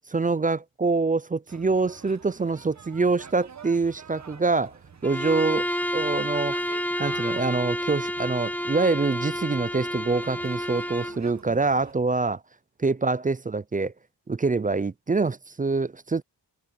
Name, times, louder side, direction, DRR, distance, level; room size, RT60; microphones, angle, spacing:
voice 1, 0.1-4.7 5.0-5.6 5.9-6.6 7.0-12.4 12.8-13.9 14.3-16.2, right 3 dB, 20° right, 0.3 m, -25 dB
sound 1, 1.5-11.9, right 6 dB, 40° right, 1.1 m, -48 dB
Bowed string instrument, 5.0-11.2, equal, 5° left, 1.0 m, -30 dB
wide cardioid pair, 150°, 43 cm